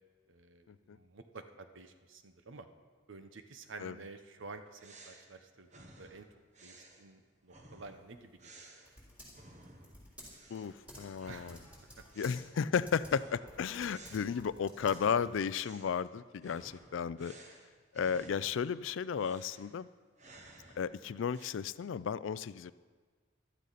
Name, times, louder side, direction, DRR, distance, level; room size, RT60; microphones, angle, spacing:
voice 1, 0.3-2.7 3.1-6.3 6.6-8.6 11.3-11.6, right 3 dB, 75° right, 8 dB, 0.9 m, -51 dB
sound 1, 4.4-10.0 10.3-10.8 11.1-18.8 19.1-21.5, right 2 dB, 40° right, 1.2 m, -57 dB
Typing, 7.9-15.4, equal, 10° right, 3.4 m, -55 dB
voice 2, 10.5-11.6 12.2-17.3 17.9-19.9 20.8-22.7, left 7 dB, 70° left, 17 dB, 0.4 m, -34 dB
15.0 x 12.0 x 4.1 m, 1.5 s
head